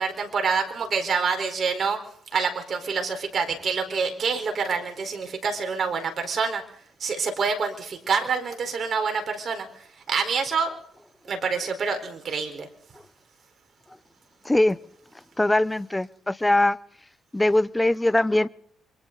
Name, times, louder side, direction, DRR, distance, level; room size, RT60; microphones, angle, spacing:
voice 1, 0.0-2.0 2.3-6.6 7.0-10.7 11.3-12.7, right 5 dB, 50° right, 5 dB, 4.3 m, -27 dB
voice 2, 14.4-14.8 15.4-16.8 17.3-18.5, left 1 dB, 10° left, 17 dB, 0.7 m, -21 dB
28.0 x 23.5 x 4.0 m, 0.64 s
cardioid pair, 90°, 0 cm